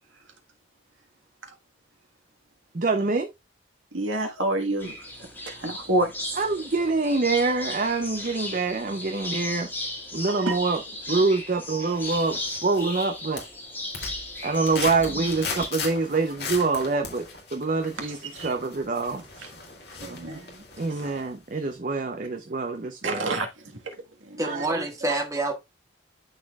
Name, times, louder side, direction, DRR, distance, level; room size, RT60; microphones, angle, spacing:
voice 1, 2.7-3.3 6.4-9.7 10.1-10.8 11.1-13.4 14.4-17.2 17.5-19.5 20.1-20.4 20.8-23.4 24.4-25.2, right 3 dB, 45° right, 0.6 m, -26 dB
voice 2, 3.9-4.9 5.5-6.1 10.4-10.5 15.2-15.3 18.0-18.5 20.0-20.6 21.0-21.1 23.0-23.5 23.8-23.9 24.3-24.8, right 2 dB, 85° right, 1.5 m, -28 dB
sound 1, 4.8-15.7, left 1 dB, 10° left, 1.8 m, -36 dB
sound 2, 11.9-13.1 13.4-21.3 21.7-21.8, left 4 dB, 55° left, 2.3 m, -38 dB
voice 3, 24.4-25.5, right 2 dB, 15° right, 1.5 m, -27 dB
12.0 x 4.3 x 2.3 m
head